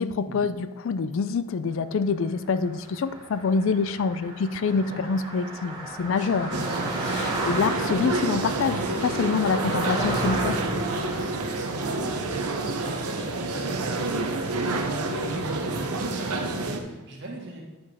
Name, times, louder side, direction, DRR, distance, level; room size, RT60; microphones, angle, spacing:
voice 1, 0.0-6.7 7.1-10.6, left 5 dB, 60° left, 14 dB, 0.3 m, -26 dB
Car passing by, 2.5-14.0, right 2 dB, 20° right, 1.5 m, -34 dB
voice 2, 4.7-5.0 6.2-6.9 9.4-9.7 11.2-12.5 12.8-17.6, right 1 dB, 55° right, 0 dB, 1.6 m, -41 dB
sound 1, 6.5-16.8, right 2 dB, 90° right, 0.8 m, -28 dB
9.4 x 5.2 x 4.2 m, 1.1 s
head